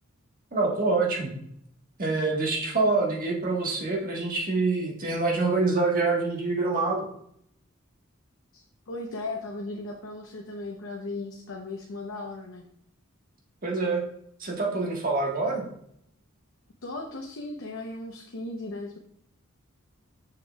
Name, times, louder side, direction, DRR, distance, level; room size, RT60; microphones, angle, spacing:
voice 1, 0.5-1.4 2.0-7.1 13.6-14.0 14.4-15.6, right 3 dB, 40° right, -1 dB, 1.5 m, -26 dB
voice 2, 8.5-12.6 16.8-19.0, left 2 dB, 65° left, 0 dB, 0.8 m, -37 dB
6.6 x 6.6 x 2.3 m, 0.71 s
head